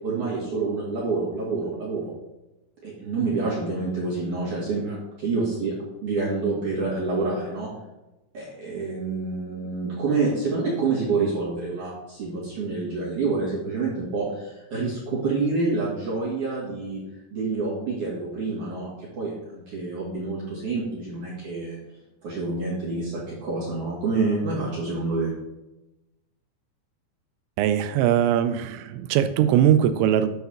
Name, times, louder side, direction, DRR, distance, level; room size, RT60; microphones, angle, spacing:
voice 1, 0.0-2.1 2.8-5.7 6.0-7.7 8.3-17.0 17.3-21.8 22.2-25.3, right 3 dB, 50° right, -7 dB, 2.8 m, -27 dB
voice 2, 27.6-30.3, right 10 dB, 85° right, 10 dB, 3.1 m, -21 dB
10.5 x 4.7 x 6.5 m, 1.0 s
omnidirectional pair, 5.9 m